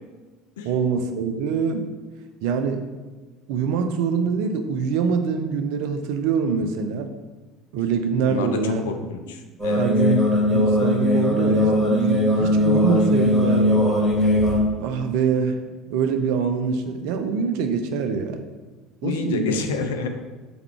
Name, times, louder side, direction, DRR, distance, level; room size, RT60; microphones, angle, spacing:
voice 1, 0.6-1.9 2.4-2.8 3.5-7.1 7.7-8.9 9.8-13.8 14.8-15.6 15.9-18.4 19.0-19.6, right 6 dB, 65° right, 6 dB, 0.4 m, -24 dB
voice 2, 8.2-9.8 19.0-20.1, left 5 dB, 75° left, 6 dB, 0.4 m, -28 dB
sound 1, 9.6-14.6, left 1 dB, 20° right, 1.4 m, -19 dB
3.4 x 2.4 x 4.5 m, 1.2 s
hypercardioid pair, 65°, 0 cm